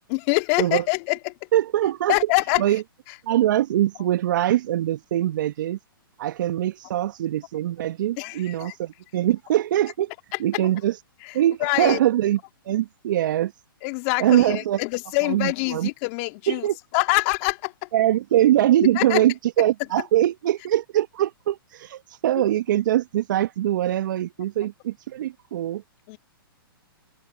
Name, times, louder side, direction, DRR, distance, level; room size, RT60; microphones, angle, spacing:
voice 1, 0.1-1.3 2.1-2.6 8.2-8.7 11.6-12.0 13.8-16.7 16.9-17.7 19.0-19.2 26.1-26.2, left 30 dB, 40° left, 2.2 m, -24 dB
voice 2, 1.5-2.2 2.6-2.8 3.3-5.8 6.2-10.1 10.4-11.0 11.3-12.4 12.6-13.5 14.2-14.8 15.2-15.9 16.5-16.8 17.9-25.8, right 13 dB, 55° right, 1.6 m, -22 dB
hypercardioid pair, 125°, 12 cm